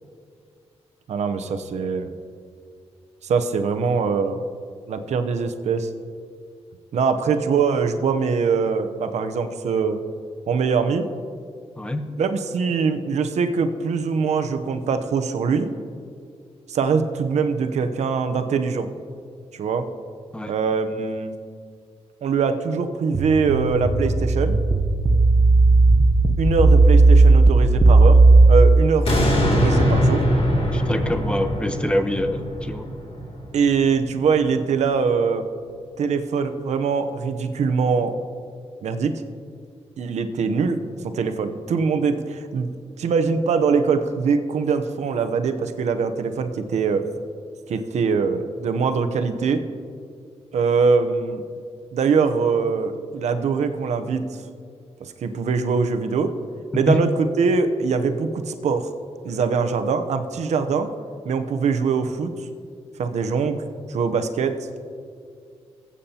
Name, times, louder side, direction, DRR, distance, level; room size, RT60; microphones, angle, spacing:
voice 1, 1.1-2.1 3.2-4.4 4.9-5.9 6.9-10.0 10.5-11.1 12.2-15.7 16.7-18.9 19.5-19.9 20.5-21.3 22.2-24.6 26.4-28.2 28.5-29.1 29.5-30.2 33.5-35.4 36.0-38.2 38.8-39.1 40.0-40.8 41.1-42.7 43.0-47.1 47.7-49.6 50.5-51.4 51.9-54.2 55.0-56.3 56.7-58.9 59.2-60.9 61.2-62.3 63.0-63.6 63.9-64.6, right 5 dB, 80° right, 8 dB, 0.8 m, -22 dB
sound 1, 23.1-28.5, right 3 dB, 30° right, 0.8 m, -14 dB
sound 2, 29.0-34.2 34.6-34.7, equal, 60° left, 2.7 m, -22 dB
voice 2, 30.7-32.9 56.9-57.0, left 1 dB, 10° left, 8 dB, 0.9 m, -25 dB
19.5 x 8.4 x 2.9 m, 2.2 s
cardioid pair, 85°, 11 cm